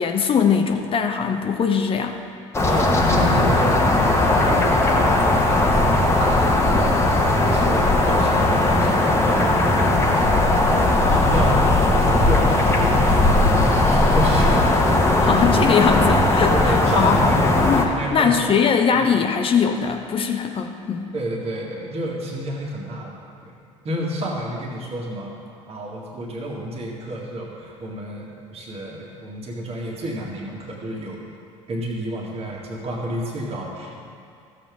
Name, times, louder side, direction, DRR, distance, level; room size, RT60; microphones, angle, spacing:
voice 1, 0.0-2.2 15.2-17.2 17.6-21.1, left 6 dB, 35° left, 5 dB, 0.8 m, -21 dB
sound 1, 2.5-17.9, left 2 dB, 15° left, 1.2 m, -18 dB
voice 2, 2.6-15.2 16.5-17.6 18.0-18.6 18.9-19.0 21.1-23.6 23.8-25.3 25.7-31.2 31.7-34.0, right 1 dB, 35° right, -3 dB, 1.9 m, -30 dB
14.0 x 7.5 x 3.6 m, 2.4 s
figure-of-eight pair, 60°, 17 cm